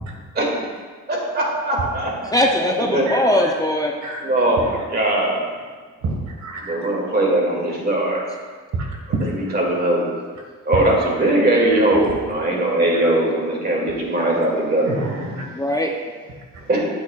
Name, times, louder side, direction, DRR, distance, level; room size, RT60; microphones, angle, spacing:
voice 1, 0.3-0.7 1.1-2.1 2.9-3.1 4.2-5.4 6.6-8.2 9.2-10.0 10.7-14.9 16.7-16.8, right 1 dB, 35° right, -2 dB, 2.4 m, -20 dB
voice 2, 2.3-3.9 15.5-15.9, left 1 dB, 10° left, 1 dB, 0.6 m, -20 dB
voice 3, 3.1-3.5 4.0-4.3 6.0-6.7 8.8-9.2 11.7-11.8 14.8-15.4, right 3 dB, 70° right, 0 dB, 1.7 m, -28 dB
8.3 x 8.2 x 2.4 m, 1.5 s
cardioid pair, 90°, 30 cm